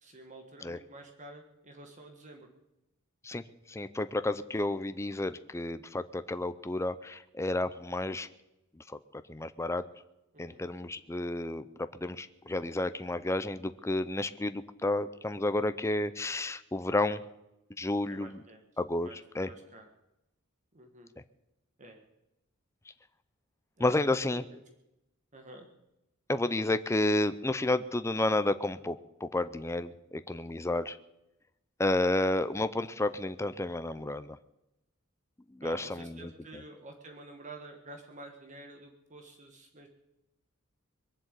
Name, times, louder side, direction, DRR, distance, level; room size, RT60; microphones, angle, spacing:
voice 1, 0.0-2.5 10.3-10.6 18.1-18.6 19.0-19.9 20.7-21.1 21.8-22.0 23.8-23.9 24.3-24.6 25.3-25.7 35.6-39.9, right 2 dB, 35° right, 4 dB, 1.6 m, -49 dB
voice 2, 3.7-8.3 9.3-9.8 10.4-11.7 11.9-17.2 17.8-18.4 18.8-19.5 23.8-24.4 26.3-29.0 29.2-31.0 31.8-34.4 35.6-36.3, left 2 dB, 15° left, 12 dB, 0.5 m, -31 dB
22.0 x 7.7 x 8.3 m, 0.92 s
head